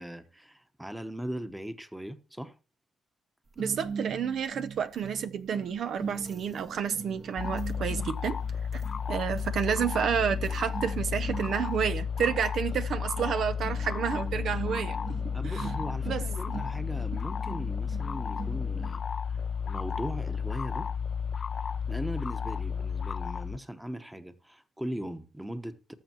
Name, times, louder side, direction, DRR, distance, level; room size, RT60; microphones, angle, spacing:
voice 1, 0.0-2.5 15.3-19.0 19.3-20.9 21.9-25.9, equal, 5° right, 1.1 m, -39 dB
sound 1, 3.6-19.0, right 5 dB, 45° right, 1.5 m, -41 dB
voice 2, 3.6-8.4 8.7-8.8 9.1-15.0 15.4-15.7 16.1-16.2, right 7 dB, 65° right, 0.7 m, -30 dB
sound 2, 7.4-23.6, left 6 dB, 45° left, 0.5 m, -33 dB
19.0 x 6.9 x 3.0 m
cardioid pair, 90°, 0 cm